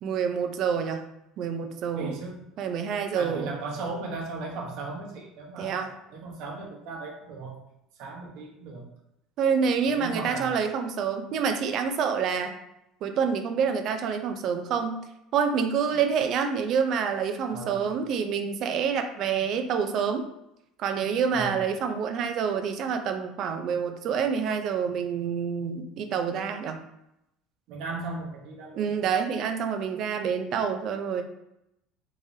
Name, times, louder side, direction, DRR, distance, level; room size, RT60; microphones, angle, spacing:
voice 1, 0.0-1.0 1.4-2.2 2.6-3.6 5.6-5.9 9.4-12.5 13.0-15.0 15.3-20.2 20.8-26.8 28.8-31.2, right 6 dB, 40° right, 6 dB, 0.4 m, -27 dB
voice 2, 2.0-2.4 3.2-7.6 8.0-8.8 9.8-10.6 17.5-17.9 21.3-21.5 27.7-28.9, right 3 dB, 60° right, -1 dB, 0.9 m, -37 dB
3.6 x 3.2 x 2.7 m, 0.84 s
cardioid pair, 165°, 0 cm